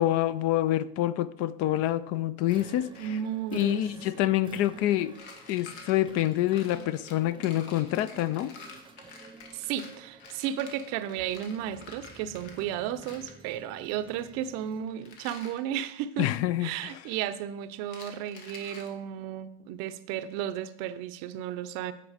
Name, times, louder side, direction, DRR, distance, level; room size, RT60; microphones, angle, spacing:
voice 1, 0.0-3.2 3.5-5.1 5.5-8.5 16.2-17.0, left 14 dB, 55° left, 16 dB, 0.4 m, -27 dB
sound 1, 2.4-15.0, right 3 dB, 15° right, 0.7 m, -51 dB
voice 2, 3.0-3.8 4.1-4.2 9.5-16.3 16.6-21.9, right 10 dB, 65° right, 12 dB, 0.6 m, -34 dB
sound 2, 5.1-12.7 13.0-13.4 14.9-15.6 17.8-18.9, left 4 dB, 75° left, 1.5 m, -49 dB
8.7 x 4.1 x 4.9 m, 0.77 s
supercardioid pair, 100°, 29 cm